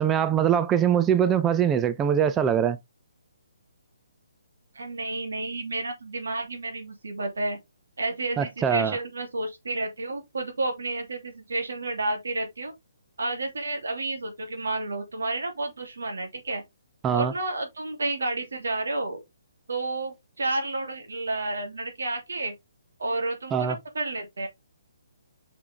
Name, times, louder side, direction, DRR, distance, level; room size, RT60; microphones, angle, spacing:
voice 1, 0.0-2.8 8.4-9.0 17.0-17.3 23.5-23.8, right 8 dB, 15° right, 0.5 m, -22 dB
voice 2, 4.7-7.6 8.0-12.7 13.2-16.6 17.1-19.2 19.7-22.5 23.0-24.5, right 2 dB, 75° right, 2.9 m, -31 dB
6.0 x 5.8 x 3.5 m
figure-of-eight pair, 140°, 0 cm